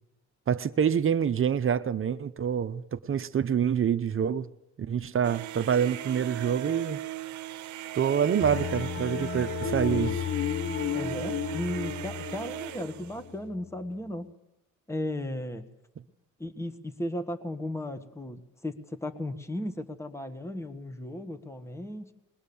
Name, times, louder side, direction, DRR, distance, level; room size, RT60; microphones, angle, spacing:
voice 1, 0.5-4.5 4.9-7.0 7.9-10.2, right 8 dB, 45° right, 0.8 m, -26 dB
sound 1, 5.2-13.2, right 13 dB, 75° right, 0.9 m, -38 dB
sound 2, 8.4-13.7, left 9 dB, 45° left, 0.9 m, -33 dB
voice 2, 10.9-14.3 14.9-15.6 16.4-22.1, left 1 dB, 10° left, 1.5 m, -35 dB
21.5 x 19.5 x 7.1 m
cardioid pair, 90°, 30 cm